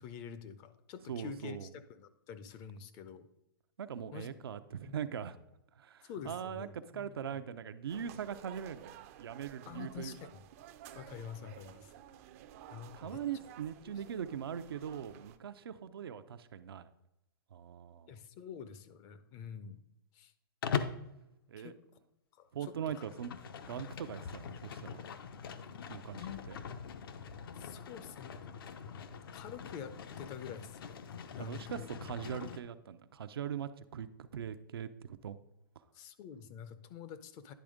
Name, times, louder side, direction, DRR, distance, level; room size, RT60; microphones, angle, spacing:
voice 1, 0.0-3.3 4.1-4.3 4.8-4.9 6.0-7.4 9.7-10.4 10.9-11.9 12.7-13.2 13.8-14.0 18.1-19.8 20.1-20.3 21.6-21.7 22.4-22.7 24.0-24.1 26.2-26.4 27.5-28.3 29.3-31.0 31.3-31.9 35.9-37.5, left 7 dB, 30° left, 13 dB, 0.5 m, -47 dB
voice 2, 1.1-1.7 3.8-5.4 5.8-10.1 12.9-16.9 17.5-18.1 21.5-21.7 22.5-23.3 23.6-25.0 25.9-26.2 26.5-26.6 31.4-35.4, right 8 dB, 85° right, 11 dB, 0.6 m, -41 dB
crowd int high school hallway light short, 7.9-15.4, right 11 dB, 40° right, 0.4 m, -54 dB
Livestock farm animals working animals, 20.6-21.1 22.8-32.6, left 6 dB, 70° left, 0.7 m, -42 dB
10.0 x 3.5 x 5.0 m, 0.87 s
hypercardioid pair, 150°, 12 cm